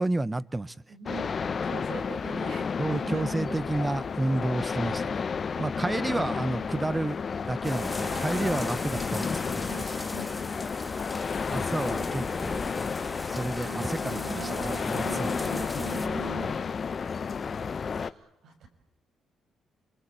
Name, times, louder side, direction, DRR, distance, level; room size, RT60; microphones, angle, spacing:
voice 1, 0.0-0.8 2.8-5.2 5.6-9.7 11.5-12.8 13.3-15.3, right 2 dB, 15° right, 19 dB, 0.9 m, -31 dB
voice 2, 0.9-3.6 6.0-7.0 8.0-8.8 9.7-10.3 11.5-12.2 13.3-16.6 17.9-18.7, right 4 dB, 70° right, 5 dB, 6.1 m, -41 dB
sound 1, 1.1-18.1, left 5 dB, 40° left, 0.9 m, -32 dB
sound 2, 7.6-16.1, left 1 dB, 5° left, 2.7 m, -39 dB
28.0 x 23.0 x 8.6 m, 0.87 s
cardioid pair, 90°, 0 cm